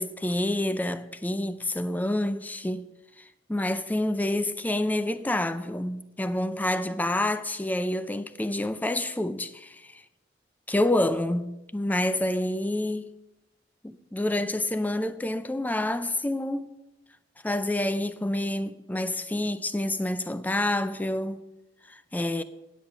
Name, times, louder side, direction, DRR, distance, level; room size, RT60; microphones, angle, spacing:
voice 1, 0.0-2.9 3.2-10.0 10.7-13.1 13.8-16.7 17.4-21.5 21.9-22.4, left 1 dB, 10° left, 0.4 m, -28 dB
9.2 x 8.3 x 5.6 m
head